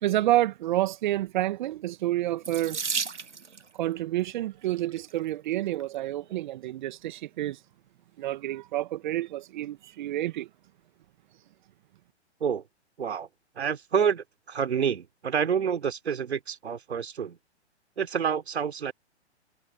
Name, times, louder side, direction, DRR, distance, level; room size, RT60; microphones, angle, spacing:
voice 1, 0.0-2.8 3.8-7.6 8.2-10.5, right 14 dB, 45° right, 1.6 m, -29 dB
Water tap faucet / Sink (filling or washing), 2.4-3.7 4.7-5.1 5.8-5.9 6.2-6.4, right 5 dB, 85° right, 1.5 m, -33 dB
voice 2, 13.6-17.4 18.0-18.9, right 7 dB, 65° right, 3.3 m, -28 dB
figure-of-eight pair, 125°, 34 cm